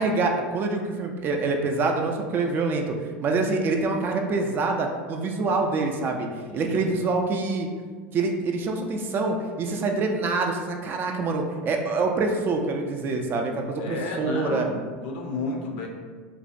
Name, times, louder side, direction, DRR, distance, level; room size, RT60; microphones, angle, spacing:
voice 1, 0.0-6.3 6.5-7.7 8.1-14.7, right 3 dB, 35° right, 3 dB, 0.3 m, -26 dB
voice 2, 6.5-6.8 13.8-15.9, left 2 dB, 70° left, 1 dB, 0.5 m, -32 dB
2.5 x 2.1 x 2.4 m, 1.5 s
hypercardioid pair, 100°, 6 cm